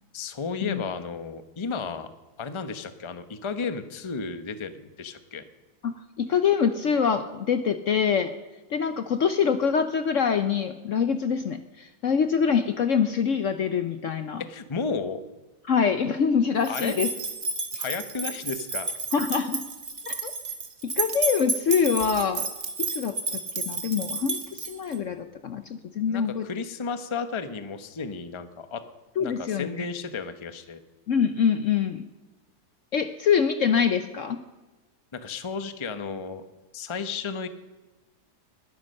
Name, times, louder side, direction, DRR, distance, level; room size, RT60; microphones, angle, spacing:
voice 1, 0.1-2.1 2.4-5.4 14.4-15.2 16.7-17.0 17.8-18.9 26.1-28.8 29.2-30.8 35.1-36.4 36.7-37.5, left 5 dB, 25° left, 10 dB, 0.7 m, -33 dB
voice 2, 5.8-8.3 8.7-14.4 15.7-17.1 19.1-19.6 20.1-20.3 20.8-22.5 22.8-23.4 23.6-26.4 29.2-29.9 31.1-32.0 32.9-34.4, left 7 dB, 60° left, 9 dB, 0.9 m, -25 dB
sound 1, 16.6-25.0, right 3 dB, 35° right, 1.8 m, -31 dB
21.0 x 9.8 x 6.5 m, 1.1 s
omnidirectional pair, 1.8 m